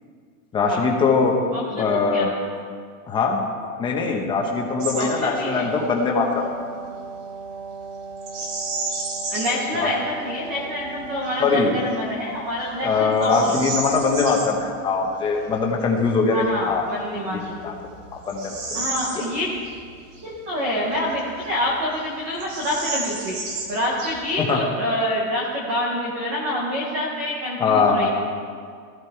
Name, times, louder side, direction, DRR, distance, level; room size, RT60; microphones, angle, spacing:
voice 1, 0.5-1.3 1.7-2.3 3.1-3.4 3.8-6.4 9.7-9.9 11.4-11.7 12.8-16.9 17.3-17.7 18.3-18.9 19.1-19.2 24.4-24.6 27.6-28.1, left 4 dB, 10° left, 0 dB, 1.0 m, -22 dB
voice 2, 1.5-2.3 4.9-5.8 9.3-13.5 16.3-17.6 18.7-19.5 20.2-23.4 23.7-28.1, equal, 10° right, -3 dB, 0.4 m, -27 dB
Wind instrument woodwind instrument, 4.3-12.2, right 4 dB, 65° right, 2.5 m, -37 dB
Bird vocalization bird call bird song, 4.8-5.1 5.4-5.7 8.2-9.7 10.3-10.4 11.0-11.4 11.9-12.0 12.6-14.5 16.6-16.7 17.3-19.8 20.1-20.2 20.9-21.7 22.0-22.1 22.3-24.5, right 3 dB, 45° right, 3.6 m, -31 dB
14.5 x 14.0 x 4.5 m, 2.1 s
supercardioid pair, 175°, 43 cm